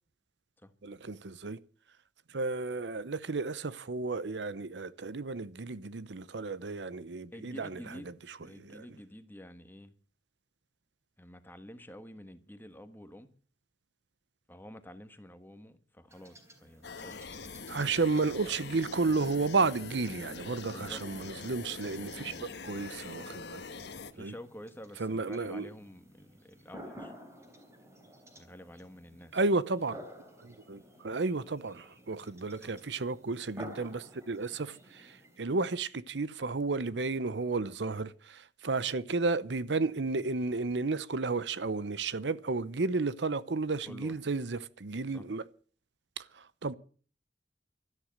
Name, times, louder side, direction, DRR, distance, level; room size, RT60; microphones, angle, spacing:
voice 1, 0.8-1.6 2.3-8.8 17.7-23.6 24.2-24.3 25.0-25.7 29.3-30.0 30.4-45.4 46.2-46.7, right 3 dB, 80° right, 0.8 m, -33 dB
voice 2, 7.3-8.1 8.4-9.9 11.2-13.3 14.5-17.2 20.7-21.0 21.9-22.5 24.1-27.1 28.4-29.4 32.3-32.7 43.9-44.2 45.1-45.2, equal, 10° left, 1.4 m, -49 dB
sound 1, 16.1-35.4, equal, 15° right, 3.4 m, -53 dB
sound 2, 16.8-24.1, left 4 dB, 70° left, 1.2 m, -44 dB
13.0 x 11.5 x 7.6 m
head